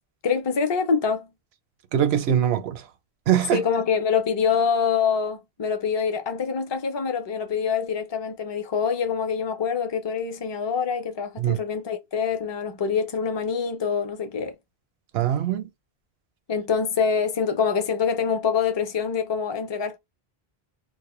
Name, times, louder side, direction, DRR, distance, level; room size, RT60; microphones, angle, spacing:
voice 1, 0.2-1.3 3.5-14.6 16.5-20.0, left 6 dB, 35° left, 0.4 m, -25 dB
voice 2, 1.9-2.8 3.3-3.6 11.4-11.6 15.1-15.7, right 10 dB, 80° right, 0.8 m, -22 dB
2.0 x 2.0 x 3.0 m
omnidirectional pair, 1.0 m